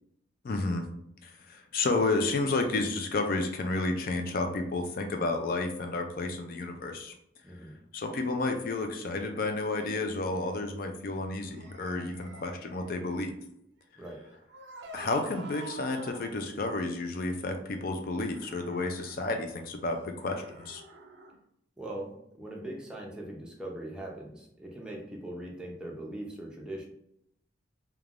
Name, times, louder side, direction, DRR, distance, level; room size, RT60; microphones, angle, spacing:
voice 1, 0.4-0.8 1.2-7.1 7.9-13.4 14.9-20.8, left 2 dB, 50° left, 5 dB, 0.4 m, -31 dB
voice 2, 7.4-7.8 14.0-14.2 21.8-26.9, right 1 dB, 5° right, -3 dB, 0.5 m, -41 dB
sound 1, 9.7-10.7 11.4-13.0 14.0-16.4 18.3-19.2 20.2-21.4, right 2 dB, 70° right, 0.4 m, -49 dB
3.2 x 2.2 x 2.4 m, 0.75 s
head